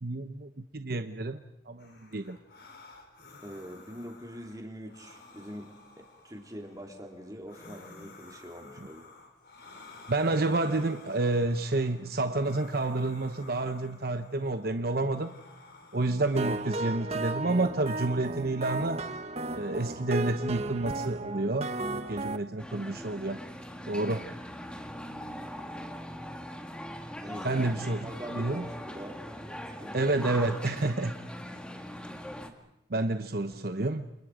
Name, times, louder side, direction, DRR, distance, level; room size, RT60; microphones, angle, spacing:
voice 1, 0.0-2.4 10.1-15.3 15.9-19.0 19.5-23.4 23.9-24.3 27.4-28.0 28.4-28.6 29.9-31.1 32.9-34.1, right 2 dB, 60° right, 0.9 m, -29 dB
sound 1, 1.8-16.8, left 3 dB, 65° left, 4.7 m, -53 dB
voice 2, 3.4-9.1 24.0-24.4 27.2-27.7 28.0-29.2 29.7-30.2, equal, 20° right, 3.7 m, -44 dB
sound 2, 16.4-22.4, right 2 dB, 35° right, 1.2 m, -34 dB
sound 3, 22.6-32.5, equal, 5° left, 2.0 m, -41 dB
28.5 x 28.5 x 5.1 m
head